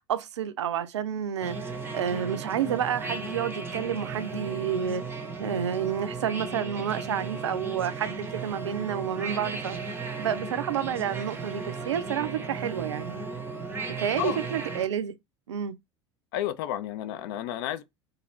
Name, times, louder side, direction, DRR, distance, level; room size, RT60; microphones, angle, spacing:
voice 1, 0.1-5.0 5.4-9.8 10.2-13.2 14.0-15.1 15.5-15.8, right 9 dB, 70° right, 0.4 m, -30 dB
sound 1, 1.4-14.9, right 4 dB, 15° right, 0.6 m, -35 dB
voice 2, 16.3-17.8, left 11 dB, 50° left, 0.4 m, -31 dB
2.5 x 2.4 x 3.0 m
figure-of-eight pair, 70°, 15 cm